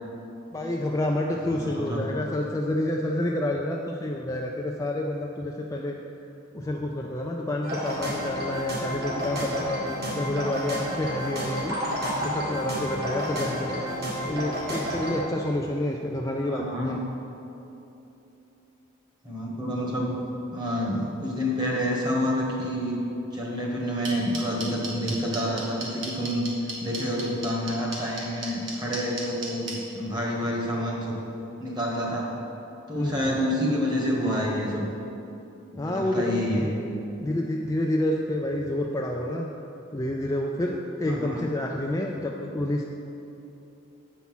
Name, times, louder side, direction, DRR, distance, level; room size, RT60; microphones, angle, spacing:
voice 1, 0.5-6.0 6.5-11.8 12.2-13.8 14.2-17.0 32.9-33.4 35.7-36.7 37.2-39.5 39.9-42.8, left 1 dB, 15° left, 0 dB, 0.3 m, -29 dB
voice 2, 1.5-2.1 16.3-17.0 19.2-20.2 20.5-23.0 23.3-26.5 26.8-31.2 31.6-32.4 32.9-34.8 35.7-36.7 41.1-41.5, equal, 20° right, -2 dB, 1.4 m, -28 dB
sound 1, 7.6-15.2, equal, 50° right, 2.0 m, -30 dB
sound 2, 24.0-29.7, right 4 dB, 70° right, 1.8 m, -33 dB
8.3 x 5.7 x 6.0 m, 2.9 s
head